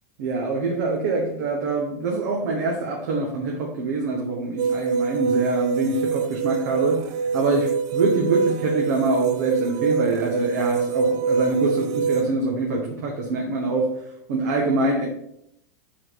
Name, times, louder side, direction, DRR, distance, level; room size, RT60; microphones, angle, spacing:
voice 1, 0.2-13.9 14.3-15.0, right 3 dB, 70° right, -1 dB, 1.4 m, -24 dB
sound 1, 4.6-12.2, right 5 dB, 45° right, 0.6 m, -25 dB
7.9 x 4.2 x 4.1 m, 0.76 s
hypercardioid pair, 115°, 9 cm